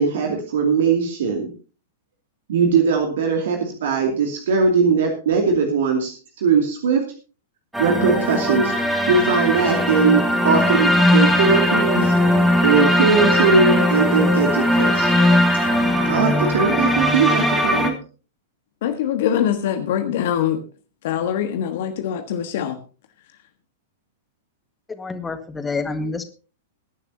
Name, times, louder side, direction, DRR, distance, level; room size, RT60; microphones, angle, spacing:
voice 1, 0.0-1.5 2.5-7.1 7.8-8.7 9.1-12.1 12.6-15.1 16.0-17.9, right 5 dB, 60° right, 2.6 m, -20 dB
sound 1, 7.7-17.9, left 1 dB, 5° right, 2.8 m, -19 dB
voice 2, 18.8-20.6 21.0-22.8, left 9 dB, 55° left, 1.5 m, -23 dB
voice 3, 24.9-26.2, left 3 dB, 10° left, 1.7 m, -28 dB
21.0 x 11.0 x 2.8 m
figure-of-eight pair, 100°, 0 cm